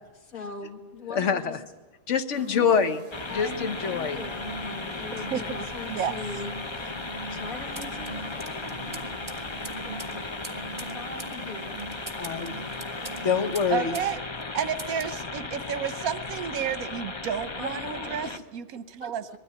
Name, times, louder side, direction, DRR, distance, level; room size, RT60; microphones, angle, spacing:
voice 1, 0.2-1.6 2.5-2.8 3.3-6.9 7.3-9.4 9.9-11.8 17.6-18.3 19.0-19.4, left 3 dB, 80° left, 3 dB, 2.4 m, -41 dB
voice 2, 1.1-1.6 2.1-3.0 3.3-4.2 12.2-12.6 13.2-13.9, left 6 dB, 60° left, 9 dB, 1.2 m, -25 dB
sound 1, 2.3-13.9, right 3 dB, 35° right, 2.4 m, -42 dB
sound 2, 3.1-18.4, left 3 dB, 25° left, 0.6 m, -36 dB
sound 3, 7.7-14.1 14.4-15.2, right 2 dB, 15° right, 1.3 m, -44 dB
voice 3, 13.7-14.3 14.5-19.4, right 8 dB, 80° right, 13 dB, 1.3 m, -31 dB
21.0 x 13.5 x 9.7 m, 1.2 s
omnidirectional pair, 1.5 m